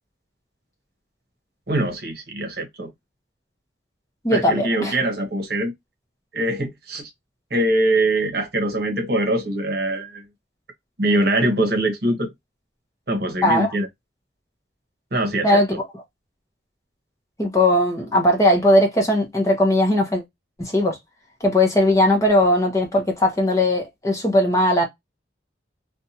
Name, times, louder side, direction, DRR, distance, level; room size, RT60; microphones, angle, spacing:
voice 1, 1.7-2.9 4.3-5.7 6.3-7.1 7.5-10.2 11.0-12.3 13.1-13.9 15.1-15.6, right 1 dB, 55° right, 0.9 m, -23 dB
voice 2, 4.2-4.9 13.4-13.7 15.4-15.7 17.4-20.2 20.6-21.0 21.4-24.9, left 1 dB, 15° left, 0.8 m, -18 dB
2.6 x 2.2 x 2.7 m
head